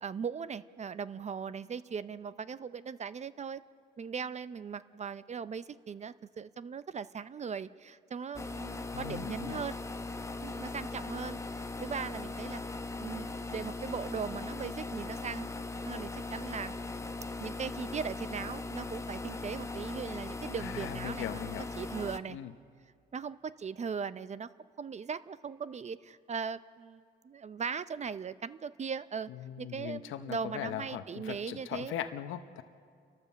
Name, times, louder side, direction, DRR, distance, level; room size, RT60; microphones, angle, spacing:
voice 1, 0.0-3.6 4.0-9.8 10.4-12.6 13.0-15.6 15.8-16.8 17.4-22.4 23.1-24.5 24.8-29.3 29.6-31.9, right 6 dB, 35° right, 15 dB, 0.5 m, -39 dB
sound 1, 8.3-22.2, left 3 dB, 15° left, 0.9 m, -39 dB
voice 2, 8.9-9.6 20.6-21.7 22.3-22.5 29.3-32.6, left 10 dB, 85° left, 9 dB, 0.8 m, -39 dB
29.5 x 12.5 x 7.4 m, 2.2 s
cardioid pair, 90°, 20 cm